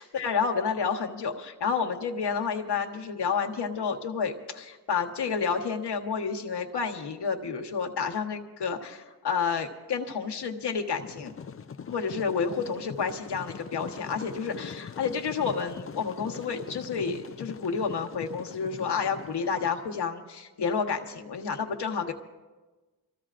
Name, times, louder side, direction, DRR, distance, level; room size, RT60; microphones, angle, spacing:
voice 1, 0.0-11.3 11.9-22.1, left 5 dB, 85° left, 3 dB, 1.3 m, -30 dB
sound 1, 11.0-20.1, left 6 dB, 35° left, 0.5 m, -42 dB
26.5 x 15.0 x 2.5 m, 1.2 s
wide cardioid pair, 80°, 40 cm